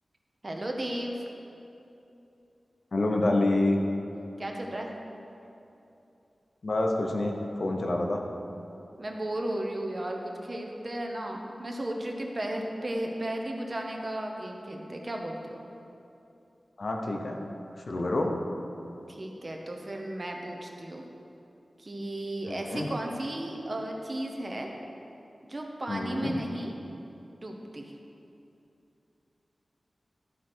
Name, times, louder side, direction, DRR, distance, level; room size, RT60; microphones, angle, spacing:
voice 1, 0.4-1.2 4.4-4.9 9.0-15.6 19.1-21.0 21.8-24.7 25.4-26.7 27.3-27.9, right 1 dB, 35° right, 1 dB, 0.9 m, -34 dB
voice 2, 2.9-3.8 6.6-8.2 16.8-17.4 17.9-18.3 22.5-22.9 25.9-26.4, left 2 dB, 60° left, 1 dB, 0.8 m, -27 dB
12.5 x 4.6 x 4.4 m, 2.8 s
wide cardioid pair, 90°, 0 cm